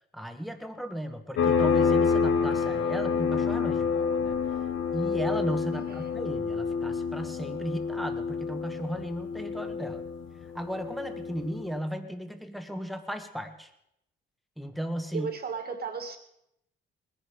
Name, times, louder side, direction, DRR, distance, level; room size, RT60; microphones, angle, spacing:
voice 1, 0.1-4.4 4.9-10.0 10.5-13.7 14.6-15.3, equal, ahead, 7 dB, 1.5 m, -35 dB
sound 1, 1.4-11.7, left 5 dB, 75° left, 1.6 m, -28 dB
voice 2, 5.7-6.0 15.1-16.2, right 5 dB, 50° right, 7 dB, 2.1 m, -35 dB
20.0 x 10.5 x 5.0 m, 0.80 s
cardioid pair, 90°, 20 cm